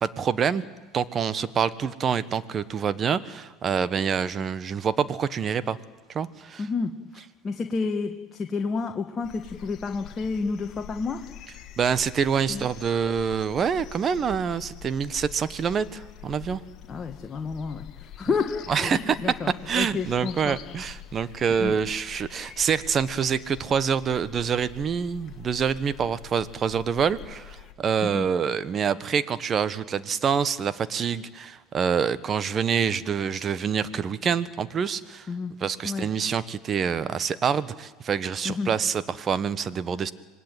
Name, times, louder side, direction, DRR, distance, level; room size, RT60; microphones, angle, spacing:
voice 1, 0.0-0.6 0.9-5.8 6.1-6.7 11.8-16.6 18.7-19.2 19.7-40.1, right 7 dB, 35° right, 15 dB, 1.3 m, -26 dB
voice 2, 6.6-6.9 7.4-11.2 12.5-12.7 16.9-19.5 19.8-20.6 21.6-21.8 28.0-28.2 35.3-35.5 35.8-36.1 38.4-38.7, left 4 dB, 30° left, 4 dB, 1.6 m, -30 dB
sound 1, 9.2-27.7, left 11 dB, 50° left, 2.2 m, -45 dB
26.0 x 20.5 x 9.1 m, 1.3 s
hypercardioid pair, 90°, 0 cm